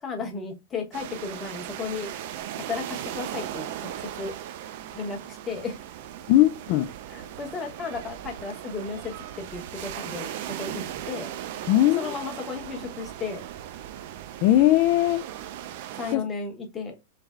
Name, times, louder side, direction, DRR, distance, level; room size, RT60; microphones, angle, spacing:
voice 1, 0.0-2.1 2.6-3.9 4.2-4.3 4.9-5.8 7.1-9.1 9.5-10.3 10.6-11.3 12.0-13.4 16.0-17.0, left 4 dB, 15° left, 0.9 m, -34 dB
sound 1, 0.9-16.2, right 11 dB, 45° right, 0.4 m, -38 dB
voice 2, 6.3-6.9 11.7-12.1 14.4-15.3 16.1-16.2, left 14 dB, 35° left, 0.3 m, -19 dB
3.3 x 3.1 x 3.6 m
supercardioid pair, 175°, 0 cm